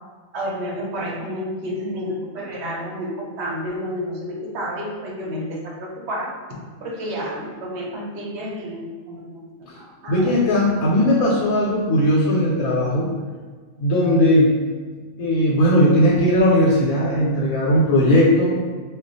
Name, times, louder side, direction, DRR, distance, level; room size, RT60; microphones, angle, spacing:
voice 1, 0.3-6.3 6.8-10.3, equal, 60° right, -3 dB, 0.8 m, -30 dB
voice 2, 10.1-13.1 13.8-14.6 15.2-18.5, equal, 85° left, -4 dB, 1.1 m, -17 dB
2.3 x 2.2 x 3.9 m, 1.5 s
omnidirectional pair, 1.4 m